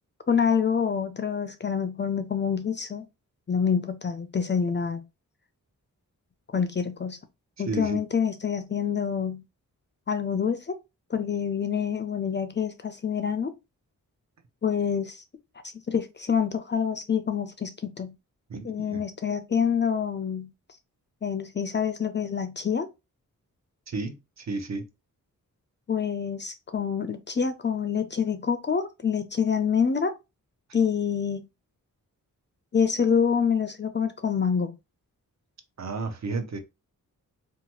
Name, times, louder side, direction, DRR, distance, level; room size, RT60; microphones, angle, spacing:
voice 1, 0.3-3.0 3.5-5.0 6.5-7.2 7.6-9.4 10.1-10.8 11.1-13.5 14.6-15.2 15.9-18.1 18.6-20.5 21.2-22.9 25.9-30.2 30.7-31.5 32.7-34.7, left 7 dB, 35° left, 0.4 m, -26 dB
voice 2, 7.6-8.0 18.5-19.0 23.9-24.9 35.8-36.6, right 3 dB, 50° right, 0.6 m, -32 dB
2.7 x 2.2 x 2.9 m
wide cardioid pair, 75°, 34 cm